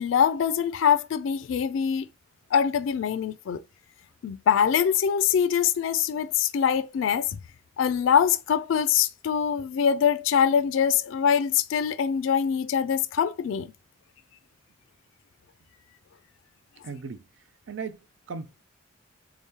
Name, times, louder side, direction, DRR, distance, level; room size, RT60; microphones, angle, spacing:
voice 1, 0.0-2.1 2.5-3.6 4.2-7.4 7.8-13.7, left 8 dB, 75° left, 0.3 m, -23 dB
voice 2, 16.8-17.2 17.7-18.6, right 5 dB, 65° right, 0.4 m, -37 dB
3.5 x 2.8 x 3.6 m
head